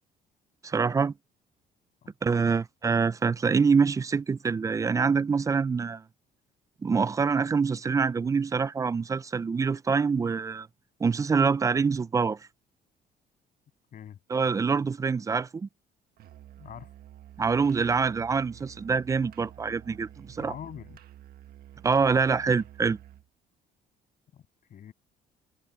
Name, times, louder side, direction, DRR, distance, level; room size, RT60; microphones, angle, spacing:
voice 1, 0.6-1.1 2.2-6.0 6.8-10.7 11.0-12.4 14.3-15.7 17.4-20.5 21.8-23.0, right 5 dB, 20° right, 0.4 m, -25 dB
voice 2, 2.0-2.6 13.9-14.2 16.6-16.9 20.4-21.0 24.3-24.4 24.7-24.9, left 9 dB, 55° left, 7.9 m, -44 dB
Musical instrument, 16.2-23.3, right 11 dB, 65° right, 1.6 m, -50 dB
cardioid pair, 110°, 17 cm